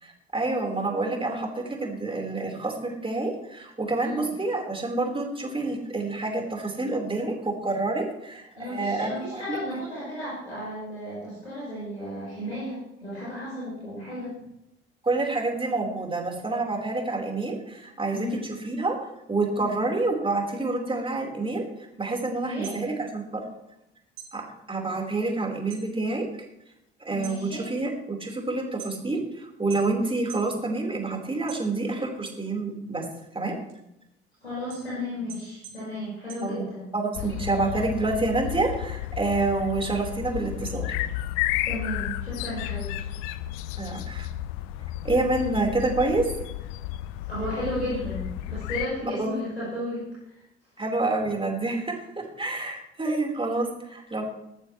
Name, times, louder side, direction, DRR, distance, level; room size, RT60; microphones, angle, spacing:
voice 1, 0.0-9.6 15.0-19.0 19.3-21.6 22.0-23.4 24.3-26.2 27.0-33.0 33.3-33.6 36.4-36.6 36.9-40.9 43.8-44.3 45.0-46.3 49.2-49.4 50.8-54.3, right 2 dB, 15° right, 1 dB, 4.6 m, -28 dB
voice 2, 8.6-14.3 18.1-18.4 19.5-19.7 22.2-22.7 27.1-27.7 34.4-36.9 41.7-42.9 47.3-50.4 53.1-53.2, left 1 dB, 90° left, -9 dB, 5.3 m, -34 dB
sound 1, 22.6-23.8 24.1-25.9 26.3-26.7 27.1-29.3 29.7-30.6 30.9-32.1 32.6-37.1, right 8 dB, 65° right, 5.5 m, -46 dB
sound 2, 37.1-48.9, left 14 dB, 60° left, 0.8 m, -32 dB
19.5 x 14.0 x 3.3 m, 0.84 s
figure-of-eight pair, 55°, 31 cm